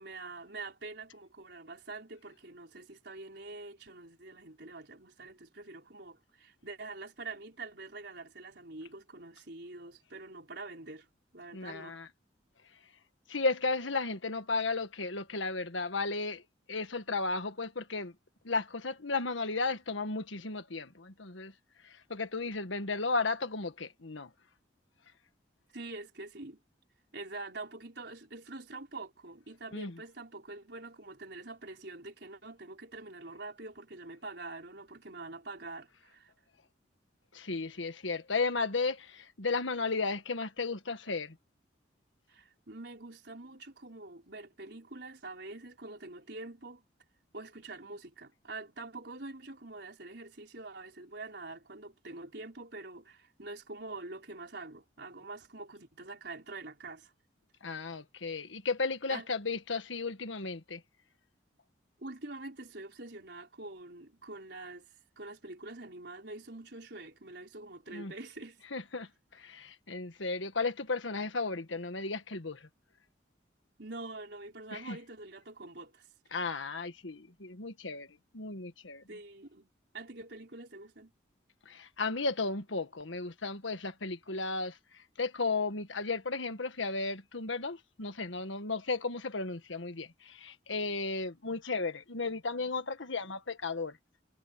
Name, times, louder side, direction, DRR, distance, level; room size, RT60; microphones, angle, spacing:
voice 1, 0.0-11.1 11.3-12.0 25.7-26.6 27.1-36.3 42.3-46.8 47.3-57.1 59.1-59.3 62.0-64.8 65.2-68.6 73.8-76.1 79.1-81.1, right 2 dB, 60° right, 5.0 m, -45 dB
voice 2, 11.5-12.1 13.3-16.4 16.7-18.1 18.4-21.5 21.8-24.3 29.7-30.0 37.3-41.4 57.6-60.8 67.9-68.1 68.7-72.7 74.7-75.0 76.3-78.1 78.3-79.0 81.6-94.0, left 3 dB, 85° left, 1.6 m, -34 dB
head